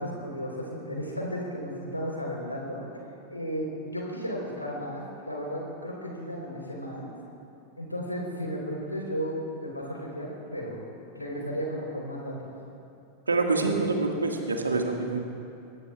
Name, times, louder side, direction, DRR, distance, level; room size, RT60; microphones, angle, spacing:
voice 1, 0.0-2.8 3.3-7.1 7.8-10.8 11.1-12.5, equal, 85° left, -2 dB, 3.9 m, -34 dB
voice 2, 13.3-15.2, right 3 dB, 75° right, 3 dB, 1.8 m, -26 dB
24.0 x 19.5 x 2.4 m, 2.6 s
figure-of-eight pair, 90°, 0 cm